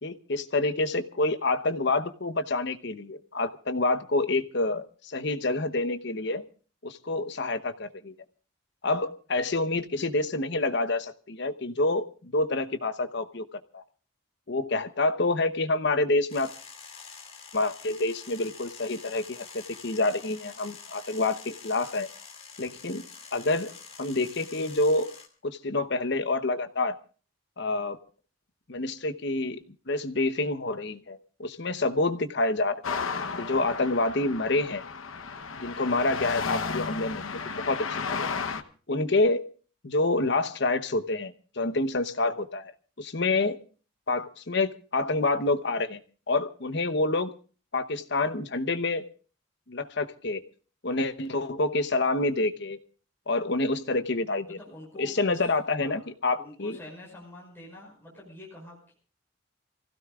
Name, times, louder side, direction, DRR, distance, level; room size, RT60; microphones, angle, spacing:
voice 1, 0.0-6.4 6.8-8.2 8.8-13.8 14.5-16.5 17.5-22.1 22.6-23.0 23.3-23.7 24.0-25.1 25.4-27.0 27.6-28.0 28.7-29.6 29.9-33.0 33.4-34.8 35.6-38.3 38.9-39.4 39.8-42.7 43.0-43.6 44.1-46.0 46.3-47.3 47.7-49.1 49.7-50.4 50.8-52.8 53.3-54.6 55.0-56.8, left 2 dB, 55° left, 10 dB, 0.9 m, -27 dB
sound 1, 16.3-25.3, left 5 dB, 30° left, 2.5 m, -47 dB
sound 2, 32.8-38.6, left 5 dB, 85° left, 1.0 m, -33 dB
voice 2, 54.5-55.5 55.7-56.0 56.4-58.9, left 2 dB, 10° left, -3 dB, 5.5 m, -46 dB
28.5 x 16.0 x 2.4 m, 0.38 s
head